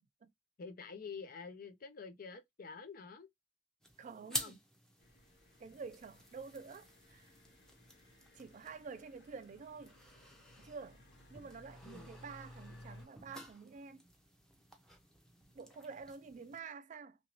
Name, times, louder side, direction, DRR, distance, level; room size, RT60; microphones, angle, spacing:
voice 1, 0.6-3.3 4.1-4.6 11.8-12.2, left 5 dB, 50° left, 0.4 m, -48 dB
sound 1, 3.8-16.6, equal, 5° left, 0.6 m, -50 dB
voice 2, 4.0-4.6 5.6-7.3 8.3-10.0 10.6-11.0 11.3-14.0 15.5-17.2, right 5 dB, 40° right, 0.3 m, -49 dB
sound 2, 5.0-13.1, left 1 dB, 65° left, 1.1 m, -59 dB
2.9 x 2.6 x 2.9 m
head